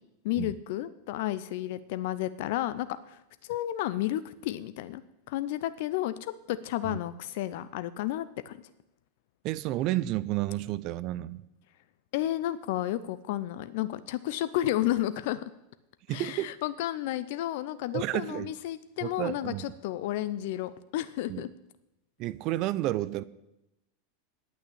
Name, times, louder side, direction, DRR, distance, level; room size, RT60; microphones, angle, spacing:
voice 1, 0.2-5.0 5.3-8.6 12.1-15.4 16.1-21.5, left 14 dB, 60° left, 14 dB, 0.5 m, -32 dB
voice 2, 9.4-11.4 16.1-16.5 17.9-18.5 19.0-19.6 21.3-21.4 22.2-23.2, right 15 dB, 50° right, 17 dB, 0.5 m, -31 dB
9.2 x 8.7 x 8.5 m, 0.90 s
hypercardioid pair, 95°, 0 cm